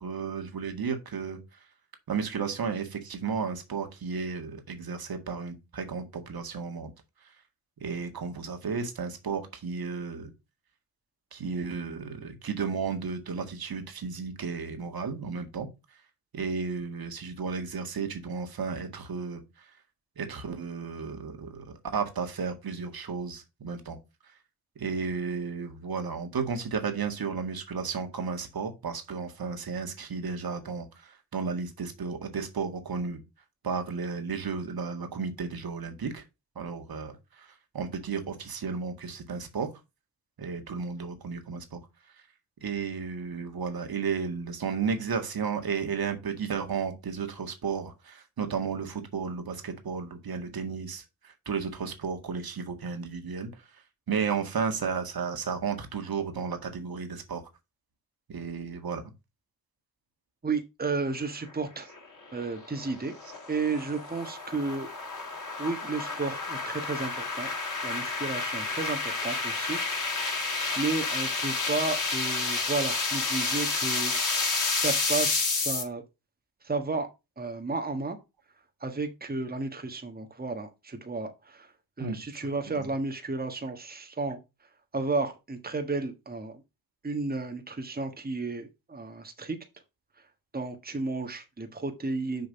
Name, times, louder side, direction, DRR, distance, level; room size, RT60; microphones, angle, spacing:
voice 1, 0.0-1.6 2.1-6.9 7.2-7.3 7.8-10.3 11.3-16.0 16.3-19.8 20.2-24.0 24.2-24.4 24.8-33.2 33.6-36.2 36.6-39.7 40.4-41.8 42.1-42.2 42.6-57.4 58.3-59.0 82.0-82.9, right 5 dB, 50° right, 1.9 m, -33 dB
voice 2, 60.4-61.9 62.3-63.1 63.5-64.9 65.6-67.5 67.8-69.8 70.2-70.3 70.8-76.0 76.6-77.1 77.4-78.2 78.8-81.7 82.0-84.4 84.9-86.6 87.0-89.6 90.5-92.5, right 3 dB, 20° right, 1.4 m, -33 dB
sound 1, 61.9-75.8, left 3 dB, 40° left, 3.0 m, -30 dB
6.9 x 3.9 x 5.2 m
supercardioid pair, 55°, 44 cm